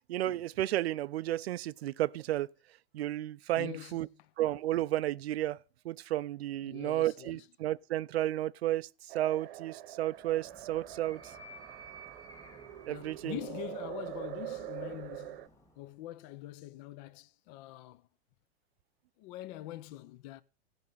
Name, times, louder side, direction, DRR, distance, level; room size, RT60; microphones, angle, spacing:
voice 1, 0.1-2.5 2.9-4.1 4.4-8.9 9.1-11.2 12.9-13.4, right 14 dB, 90° right, 0.5 m, -32 dB
voice 2, 3.6-4.3 6.6-7.5 12.9-18.1 19.2-20.4, left 15 dB, 45° left, 0.6 m, -44 dB
sound 1, 9.1-15.5, right 15 dB, 65° right, 0.9 m, -44 dB
Animal, 10.1-15.9, right 1 dB, 10° left, 1.7 m, -55 dB
14.5 x 5.4 x 5.6 m
hypercardioid pair, 125°, 30 cm